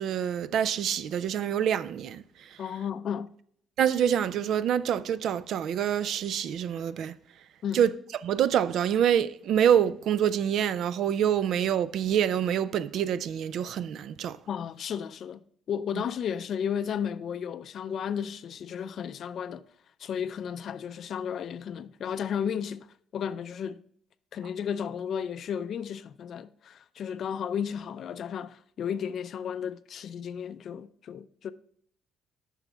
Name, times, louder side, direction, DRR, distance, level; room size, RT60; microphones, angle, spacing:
voice 1, 0.0-2.2 3.8-7.1 7.7-7.9 8.2-14.4, right 9 dB, 65° right, 0.4 m, -26 dB
voice 2, 2.6-3.3 7.6-7.9 14.5-19.6 20.0-22.9 23.1-23.8 24.3-31.5, left 8 dB, 55° left, 0.4 m, -33 dB
9.0 x 6.1 x 3.4 m
cardioid pair, 115°, 0 cm